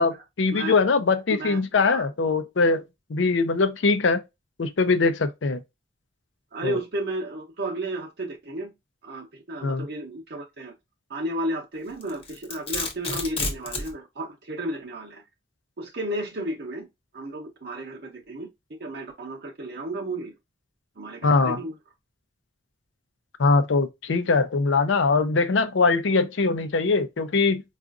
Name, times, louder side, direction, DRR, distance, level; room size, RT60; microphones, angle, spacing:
voice 1, 0.0-2.8 3.1-4.2 4.6-5.6 6.6-6.8 9.6-9.8 21.2-21.6 23.4-27.6, left 4 dB, 75° left, 0.5 m, -22 dB
voice 2, 1.3-2.1 6.5-8.7 9.0-10.7 11.1-15.2 15.8-16.9 17.1-18.5 18.8-20.4 21.0-21.7, right 1 dB, 55° right, 0.7 m, -33 dB
Domestic sounds home sounds, 12.0-13.9, left 3 dB, 30° left, 0.9 m, -30 dB
4.7 x 2.4 x 2.4 m
head